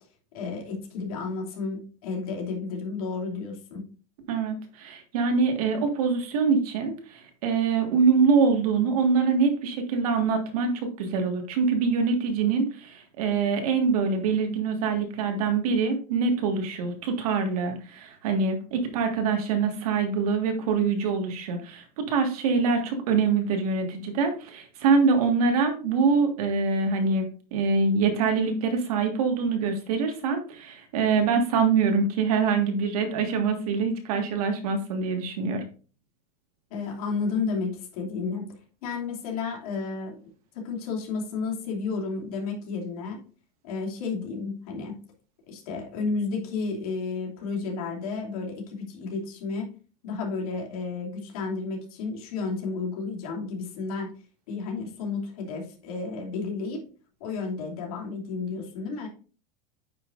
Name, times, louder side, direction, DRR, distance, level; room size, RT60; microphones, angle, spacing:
voice 1, 0.3-3.8 36.7-38.5 38.8-40.2 40.5-43.2 43.6-45.0 45.5-49.7 50.0-54.1 54.5-56.8 57.2-59.1, left 4 dB, 60° left, -1 dB, 2.7 m, -32 dB
voice 2, 4.3-35.7, right 5 dB, 65° right, 4 dB, 1.8 m, -24 dB
9.0 x 5.7 x 2.6 m, 0.37 s
supercardioid pair, 180°, 21 cm